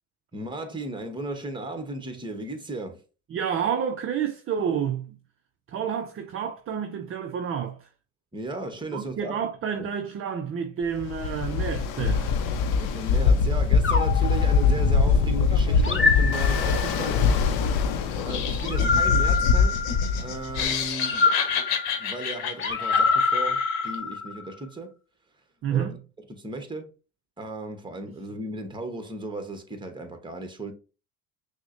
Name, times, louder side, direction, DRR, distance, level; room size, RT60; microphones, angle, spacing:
voice 1, 0.3-3.0 8.3-9.4 12.8-17.4 18.2-19.8 20.2-21.4 22.0-24.9 25.7-25.9 26.4-26.9 27.4-30.7, right 2 dB, 10° right, 0.9 m, -35 dB
voice 2, 3.3-5.2 5.7-7.9 8.9-12.3 25.6-26.0, right 8 dB, 30° right, 0.4 m, -29 dB
Ocean, 10.9-20.8, left 5 dB, 60° left, 0.6 m, -23 dB
sound 1, 13.8-15.2 15.8-17.1 18.6-20.3 21.0-24.5, left 4 dB, 25° left, 0.9 m, -26 dB
Laughter, 18.1-24.0, left 7 dB, 80° left, 0.9 m, -32 dB
6.0 x 2.1 x 2.5 m
supercardioid pair, 85°, 45 cm